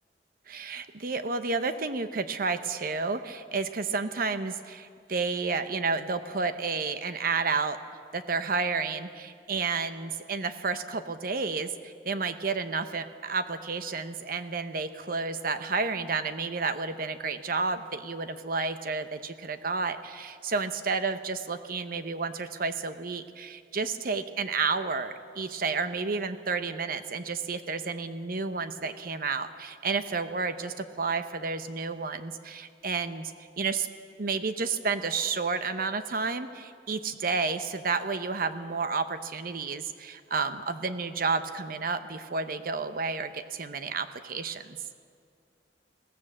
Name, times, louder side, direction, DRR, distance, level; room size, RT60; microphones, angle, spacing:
voice 1, 0.5-7.8 8.1-33.3 33.6-33.9 34.2-44.8, right 4 dB, 55° right, 10 dB, 0.9 m, -31 dB
21.0 x 17.5 x 7.5 m, 2.3 s
head